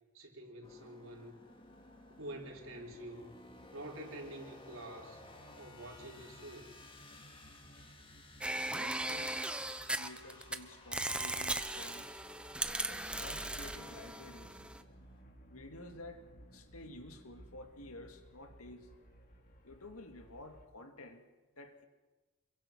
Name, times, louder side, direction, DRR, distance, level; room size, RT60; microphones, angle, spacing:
voice 1, 0.1-1.4 2.2-3.3 3.7-5.2 5.6-6.8, right 1 dB, 65° right, 4.3 m, -47 dB
sound 1, 0.6-15.2, left 2 dB, 25° left, 2.1 m, -58 dB
sound 2, 1.5-20.7, right 1 dB, 40° left, 2.6 m, -60 dB
sound 3, 8.4-10.6 10.9-14.8, right 1 dB, 5° right, 0.8 m, -38 dB
voice 2, 8.7-9.4 9.7-12.2 12.9-14.6 15.5-16.3 16.5-18.9 19.6-21.2 21.6-21.8, left 2 dB, 80° left, 2.1 m, -51 dB
27.5 x 23.0 x 6.0 m
head